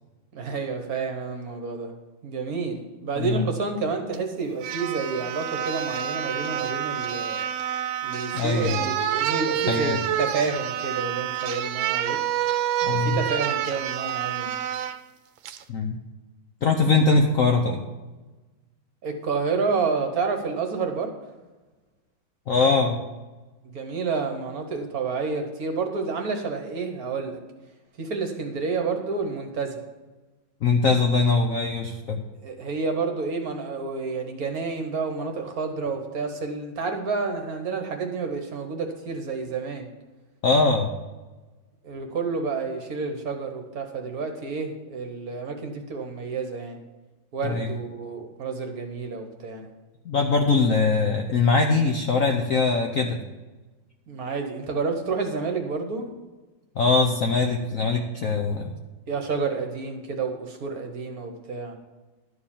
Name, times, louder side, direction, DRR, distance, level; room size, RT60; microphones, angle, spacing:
voice 1, 0.3-1.9 2.2-7.4 8.0-12.2 12.9-14.5 19.0-21.1 23.6-27.4 28.0-29.7 32.4-39.9 41.8-46.8 47.3-49.7 54.1-56.1 59.1-61.8, right 4 dB, 55° right, 5 dB, 1.3 m, -29 dB
sound 1, 4.1-4.2 4.6-15.0 15.5-15.6, right 10 dB, 75° right, 1.3 m, -28 dB
voice 2, 8.3-8.8 9.7-10.0 12.8-13.2 15.7-16.0 16.6-17.8 22.5-23.0 30.6-32.2 40.4-40.9 47.4-47.8 50.0-53.2 56.8-58.7, left 4 dB, 65° left, 3 dB, 0.8 m, -22 dB
12.0 x 4.8 x 7.2 m, 1.2 s
omnidirectional pair, 2.2 m